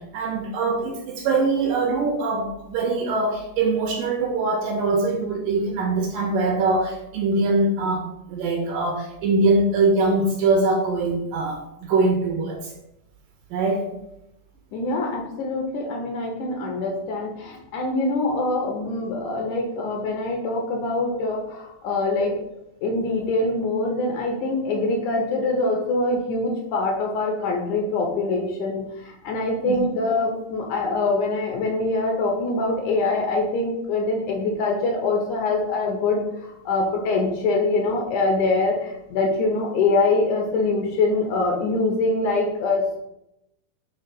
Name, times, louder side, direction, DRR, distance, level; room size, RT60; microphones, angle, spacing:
voice 1, 0.0-12.7 13.5-13.9 29.7-29.8, right 3 dB, 75° right, 3 dB, 2.2 m, -23 dB
voice 2, 14.7-22.4 22.8-43.0, left 3 dB, 75° left, 1 dB, 1.9 m, -24 dB
5.8 x 3.9 x 5.4 m, 0.85 s
omnidirectional pair, 4.4 m